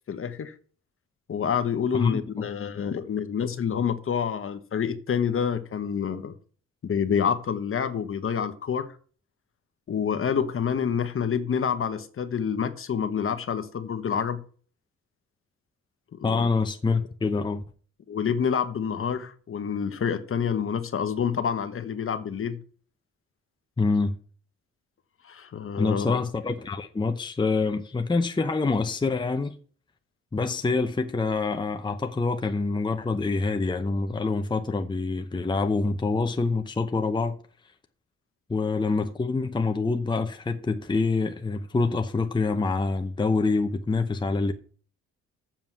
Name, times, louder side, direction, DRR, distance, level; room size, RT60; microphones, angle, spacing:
voice 1, 0.1-0.5 1.3-6.3 6.8-8.9 9.9-14.4 16.2-16.5 18.1-22.6 25.2-26.2, left 7 dB, 45° left, 1.2 m, -27 dB
voice 2, 1.9-2.5 16.2-17.6 23.8-24.2 25.8-29.5 30.3-37.4 38.5-44.5, left 3 dB, 15° left, 0.8 m, -26 dB
7.4 x 7.4 x 6.2 m
cardioid pair, 90°, 30 cm